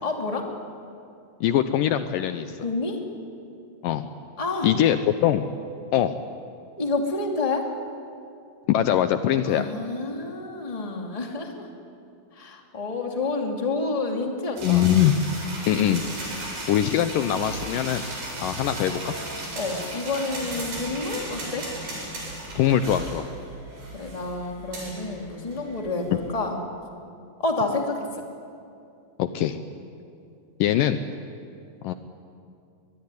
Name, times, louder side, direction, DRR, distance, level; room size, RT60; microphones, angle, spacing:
voice 1, 0.0-0.5 2.6-3.1 4.4-4.7 6.8-7.7 9.4-11.7 12.3-14.9 19.5-21.7 23.9-26.6 27.4-28.2, left 3 dB, 10° left, 2 dB, 2.0 m, -29 dB
voice 2, 1.4-2.6 3.8-4.0 4.6-5.5 5.9-6.1 8.7-9.7 14.6-15.1 15.7-16.0 16.7-18.0 18.4-19.2 22.6-23.3 29.2-29.6 30.6-31.0 31.8-31.9, left 11 dB, 75° left, 10 dB, 2.2 m, -22 dB
sound 1, 14.6-26.3, right 1 dB, 70° right, 9.1 m, -36 dB
23.5 x 21.5 x 9.9 m, 2.5 s
omnidirectional pair, 4.2 m